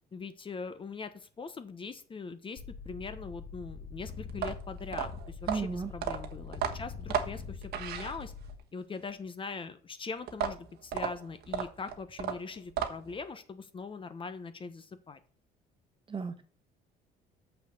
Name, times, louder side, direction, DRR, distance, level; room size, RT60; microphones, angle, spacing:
voice 1, 0.1-8.3 8.7-15.2, left 4 dB, 30° left, 10 dB, 1.0 m, -41 dB
sound 1, 2.6-8.5, left 5 dB, 70° left, 1.7 m, -44 dB
sound 2, 4.3-8.6 10.3-13.2, right 8 dB, 70° right, 1.3 m, -34 dB
voice 2, 5.5-5.9 16.1-16.4, right 5 dB, 30° right, 9 dB, 1.4 m, -34 dB
6.8 x 6.0 x 6.8 m, 0.42 s
cardioid pair, 110°, 17 cm